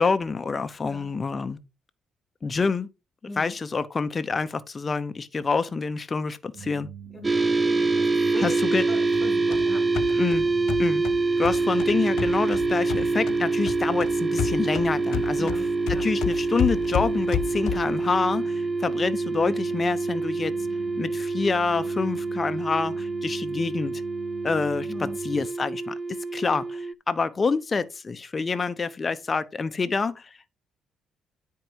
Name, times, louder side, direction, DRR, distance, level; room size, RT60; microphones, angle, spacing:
voice 1, 0.0-1.6 2.4-2.9 3.4-6.9 8.4-8.8 10.1-10.5 10.8-11.0 11.4-15.5 15.9-20.5 21.0-24.0 24.4-25.9 26.3-30.3, left 4 dB, 35° left, 0.9 m, -27 dB
voice 2, 0.8-1.1 3.2-3.5 7.1-9.9 15.4-16.1 24.9-25.2, left 1 dB, 10° left, 3.2 m, -40 dB
sound 1, 6.5-25.5, right 7 dB, 60° right, 0.9 m, -43 dB
sound 2, 7.2-26.9, right 3 dB, 25° right, 0.4 m, -26 dB
sound 3, 9.1-13.4 13.7-18.0, left 11 dB, 80° left, 0.5 m, -32 dB
9.5 x 4.7 x 4.6 m
cardioid pair, 90°, 0 cm